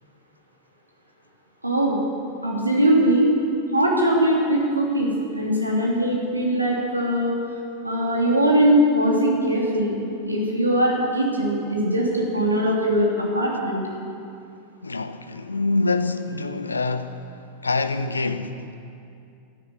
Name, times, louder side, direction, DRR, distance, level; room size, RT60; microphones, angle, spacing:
voice 1, 1.6-2.0 2.4-3.3 3.7-7.4 7.8-9.9 10.3-13.1 13.3-13.8, right 1 dB, 85° right, 2.9 m, -21 dB
voice 2, 14.8-17.2 17.6-18.6, left 3 dB, 80° left, 0.7 m, -25 dB
12.5 x 11.0 x 8.5 m
figure-of-eight pair, 90°, 0 cm